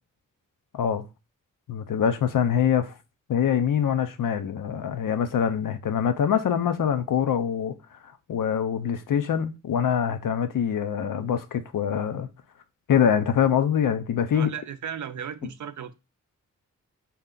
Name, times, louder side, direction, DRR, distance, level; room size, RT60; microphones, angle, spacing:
voice 1, 0.7-1.0 1.7-2.9 3.3-7.7 8.0-12.3 12.9-14.5, left 8 dB, 75° left, 0.6 m, -24 dB
voice 2, 14.3-16.0, right 8 dB, 65° right, 0.5 m, -35 dB
3.3 x 2.8 x 3.7 m
cardioid pair, 65°, 32 cm